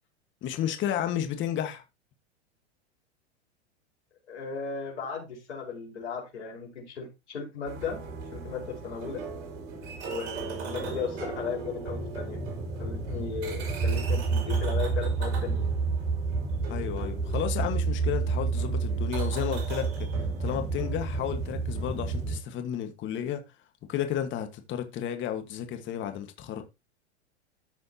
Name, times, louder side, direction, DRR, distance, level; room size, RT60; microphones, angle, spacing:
voice 1, 0.4-1.8 16.7-20.1 20.4-23.4 23.9-26.6, left 10 dB, 35° left, 1.6 m, -32 dB
voice 2, 4.3-8.0 8.3-9.2 10.0-12.4 12.8-15.7, left 5 dB, 80° left, 5.2 m, -36 dB
sound 1, 7.7-22.4, right 4 dB, 55° right, 5.4 m, -30 dB
13.5 x 6.2 x 2.9 m
hypercardioid pair, 105°, 34 cm